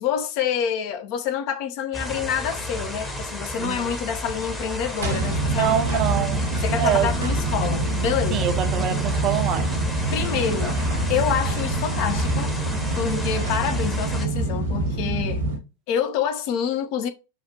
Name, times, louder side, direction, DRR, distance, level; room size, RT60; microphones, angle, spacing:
voice 1, 0.0-5.7 6.6-8.5 10.1-10.8 11.1-12.5 13.0-15.5 15.9-17.1, left 8 dB, 45° left, 0.5 m, -27 dB
sound 1, 1.9-14.3, equal, 15° left, 0.9 m, -32 dB
sound 2, 5.0-15.6, right 2 dB, 65° right, 0.9 m, -25 dB
voice 2, 5.6-6.5 6.8-7.1 8.3-9.8, right 9 dB, 35° right, 0.7 m, -25 dB
5.6 x 2.4 x 2.7 m
figure-of-eight pair, 90°, 0 cm